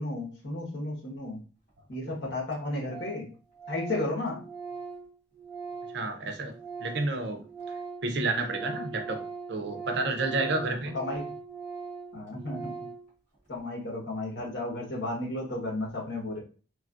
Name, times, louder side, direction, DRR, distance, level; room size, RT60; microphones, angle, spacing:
voice 1, 0.0-1.4 1.9-3.3 3.7-4.4 10.9-11.2 12.1-12.7 13.5-16.4, left 2 dB, 65° left, -3 dB, 1.3 m, -33 dB
Organ, 1.9-2.0 2.2-2.3 2.5-2.6 2.9-3.3 3.5-7.1 7.4-13.1, right 5 dB, 45° left, 1.2 m, -40 dB
voice 2, 5.9-7.4 8.0-9.2 9.5-11.0, right 2 dB, 65° right, 5 dB, 0.6 m, -30 dB
3.2 x 2.4 x 2.5 m, 0.37 s
head